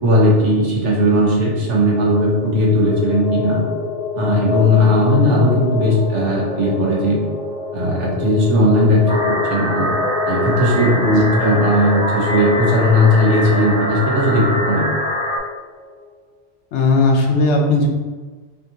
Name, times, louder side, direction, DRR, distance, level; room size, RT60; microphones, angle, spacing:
voice 1, 0.0-3.6 4.1-7.2 7.7-9.9 10.2-14.9, left 1 dB, 80° right, -4 dB, 1.5 m, -16 dB
sound 1, 1.6-16.0, left 5 dB, 35° left, 0.9 m, -28 dB
sound 2, 9.1-15.4, equal, 20° right, 0.5 m, -23 dB
voice 2, 16.7-17.9, left 2 dB, 75° left, 1 dB, 1.0 m, -16 dB
5.8 x 2.9 x 2.8 m, 1.4 s
omnidirectional pair, 1.2 m